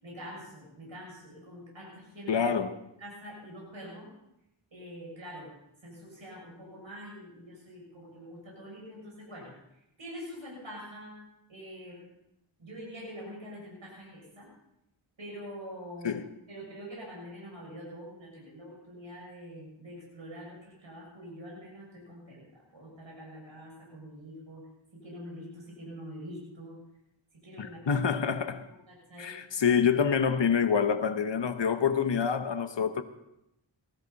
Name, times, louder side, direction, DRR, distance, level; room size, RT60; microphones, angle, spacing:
voice 1, 0.0-2.3 3.0-4.1 4.7-5.5 5.8-9.5 10.0-11.2 11.5-12.1 12.6-14.5 15.2-16.1 16.5-22.4 22.7-24.6 24.9-26.8 27.4-27.8 28.9-29.4, equal, 75° right, 7.0 m, -45 dB
voice 2, 2.3-2.8 16.0-16.2 27.6-28.7 29.2-33.0, left 6 dB, 65° left, 1.1 m, -27 dB
19.5 x 14.0 x 4.1 m
wide cardioid pair, 50°, 46 cm